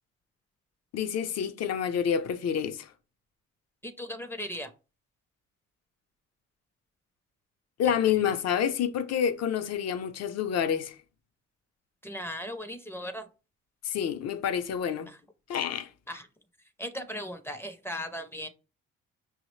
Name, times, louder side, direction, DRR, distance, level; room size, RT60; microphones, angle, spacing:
voice 1, 0.9-2.9 7.8-11.0 13.8-15.1 15.5-15.9, left 8 dB, 55° left, 0.6 m, -28 dB
voice 2, 3.8-4.7 8.2-8.3 12.0-13.3 16.1-16.3 16.8-18.5, equal, 10° left, 0.4 m, -37 dB
5.4 x 2.0 x 3.1 m
cardioid pair, 90°, 30 cm